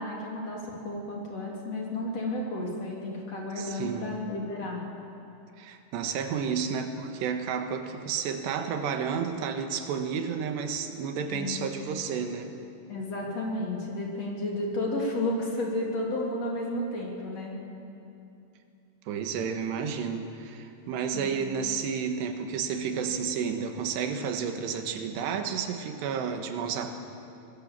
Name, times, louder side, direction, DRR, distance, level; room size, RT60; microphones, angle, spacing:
voice 1, 0.0-4.8 11.3-11.6 12.9-17.5 21.1-21.3, left 1 dB, 40° left, -2 dB, 3.7 m, -32 dB
voice 2, 3.6-4.1 5.6-12.6 19.1-26.9, right 6 dB, 80° right, 6 dB, 3.5 m, -31 dB
24.0 x 20.5 x 7.5 m, 2.7 s
omnidirectional pair, 4.8 m